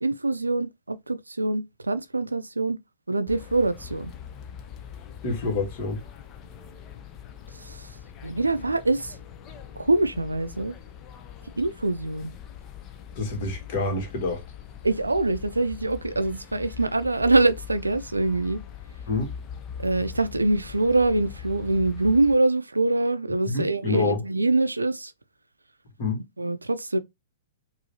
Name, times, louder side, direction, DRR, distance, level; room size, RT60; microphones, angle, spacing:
voice 1, 0.0-2.8 3.1-4.1 7.5-7.9 8.2-9.2 9.8-10.7 11.6-12.3 14.8-18.6 19.8-25.1 26.4-27.0, right 2 dB, 90° right, 0.5 m, -24 dB
sound 1, 3.3-22.4, left 8 dB, 30° left, 0.6 m, -42 dB
voice 2, 5.2-6.0 13.2-14.4 19.1-19.3 23.5-24.2 26.0-26.2, left 3 dB, 45° left, 1.8 m, -27 dB
4.9 x 2.7 x 2.8 m
figure-of-eight pair, 115°, 0 cm